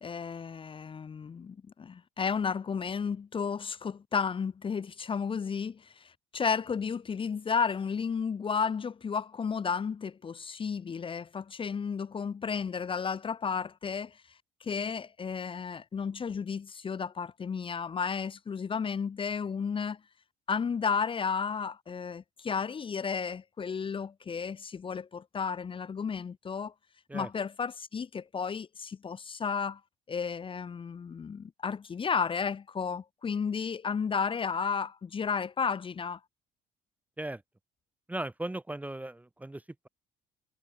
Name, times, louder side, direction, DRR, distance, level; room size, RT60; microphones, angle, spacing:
voice 1, 0.0-14.2 14.6-20.0 20.5-26.7 27.1-29.8 30.1-36.2, left 6 dB, 30° left, 1.1 m, -33 dB
voice 2, 38.1-39.9, right 1 dB, 10° right, 1.2 m, -37 dB
cardioid pair, 110°, 17 cm